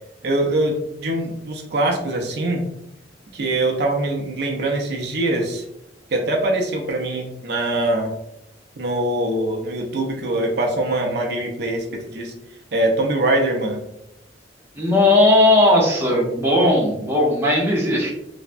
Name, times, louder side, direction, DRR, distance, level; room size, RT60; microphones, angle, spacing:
voice 1, 0.2-2.6 3.3-5.6 6.1-8.1 8.8-12.3 12.7-13.8, right 1 dB, 60° right, 1 dB, 0.5 m, -23 dB
voice 2, 14.7-18.1, left 1 dB, 15° right, -3 dB, 0.6 m, -17 dB
3.3 x 2.0 x 2.5 m, 0.82 s
head